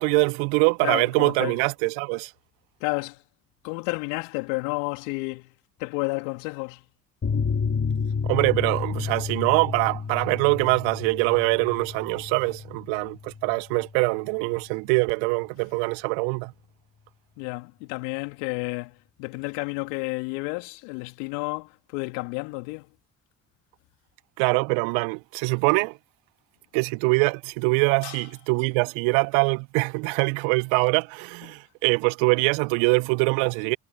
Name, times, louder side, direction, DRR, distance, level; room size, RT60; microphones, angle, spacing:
voice 1, 0.0-2.3 8.3-16.5 24.4-26.0 26.7-33.8, right 33 dB, 70° right, 0.7 m, -23 dB
voice 2, 0.8-1.6 2.8-3.2 3.6-5.5 5.8-6.8 17.4-22.9 28.0-28.2, left 30 dB, 75° left, 2.3 m, -31 dB
sound 1, 7.2-14.3 14.6-14.7 15.0-15.1, left 5 dB, 35° left, 2.1 m, -31 dB
hypercardioid pair, 45°, 47 cm